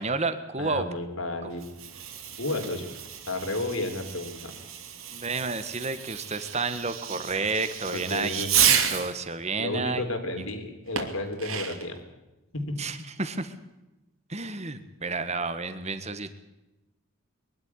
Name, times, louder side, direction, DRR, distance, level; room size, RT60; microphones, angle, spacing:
voice 1, 0.0-0.9 1.4-1.5 5.1-10.0 10.4-10.5 12.8-13.5 14.3-16.3, right 3 dB, 30° right, 11 dB, 1.6 m, -31 dB
voice 2, 0.6-1.6 2.4-2.9 3.3-4.5 7.9-8.5 9.6-12.0 12.5-12.8, left 2 dB, 75° left, 6 dB, 3.8 m, -32 dB
Fireworks, 1.5-9.2 11.0-12.0, right 8 dB, 80° right, 2.8 m, -30 dB
22.5 x 12.5 x 9.8 m, 1.0 s
head